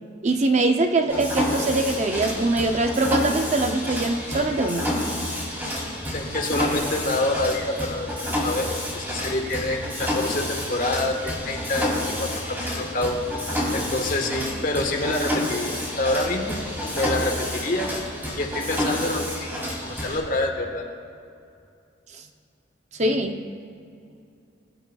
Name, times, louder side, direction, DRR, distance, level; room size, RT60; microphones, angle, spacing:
voice 1, 0.2-4.9 23.0-23.4, right 2 dB, 40° right, 5 dB, 0.6 m, -22 dB
Mechanisms, 1.1-20.2, left 1 dB, 10° right, 2.7 m, -29 dB
voice 2, 6.1-8.7 8.9-13.2 13.7-17.9 18.4-19.5 19.8-20.8, left 2 dB, 45° left, 2 dB, 1.4 m, -27 dB
22.5 x 9.8 x 2.3 m, 2.5 s
head